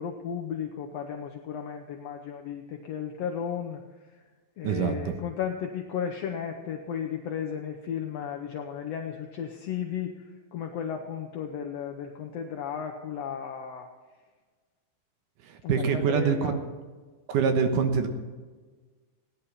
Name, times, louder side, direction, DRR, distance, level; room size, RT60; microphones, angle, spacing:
voice 1, 0.0-3.8 4.6-13.9 15.6-16.6, left 8 dB, 70° left, 3 dB, 1.5 m, -34 dB
voice 2, 4.6-5.2 15.5-16.5 17.3-18.1, right 6 dB, 70° right, 6 dB, 2.6 m, -25 dB
16.5 x 10.5 x 5.6 m, 1.4 s
omnidirectional pair, 4.0 m